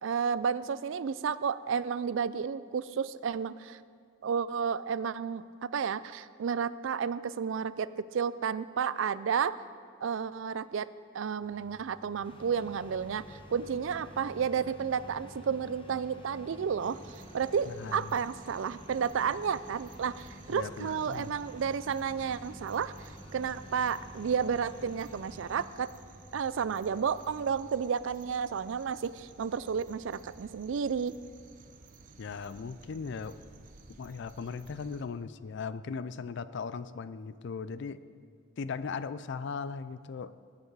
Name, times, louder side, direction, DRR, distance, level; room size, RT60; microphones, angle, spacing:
voice 1, 0.0-3.8 4.2-9.6 10.0-10.9 11.1-17.0 17.3-25.9 26.3-31.2, right 6 dB, 65° right, 16 dB, 0.4 m, -32 dB
sound 1, 11.4-27.7, right 1 dB, 10° right, 1.2 m, -56 dB
sound 2, 12.2-25.7, left 1 dB, 25° left, 0.9 m, -51 dB
sound 3, 16.8-35.0, right 3 dB, 40° right, 0.7 m, -55 dB
voice 2, 17.7-18.1 20.5-21.3 32.2-33.4 34.0-38.0 38.6-40.4, left 5 dB, 60° left, 15 dB, 0.4 m, -38 dB
19.0 x 8.0 x 4.7 m, 2.2 s
head